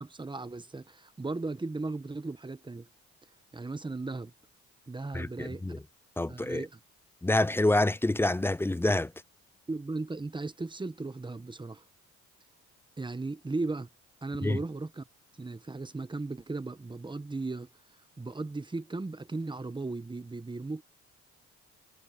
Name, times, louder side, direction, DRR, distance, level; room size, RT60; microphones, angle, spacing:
voice 1, 0.0-2.9 3.5-4.3 4.9-5.6 6.3-6.8 9.7-11.8 13.0-13.9 14.2-15.0 15.4-17.7 18.2-20.8, right 3 dB, 15° right, 1.2 m, -36 dB
voice 2, 5.1-5.8 6.2-6.6 7.2-9.1 14.4-14.6, left 2 dB, 10° left, 0.5 m, -27 dB
cardioid pair, 90°, 30 cm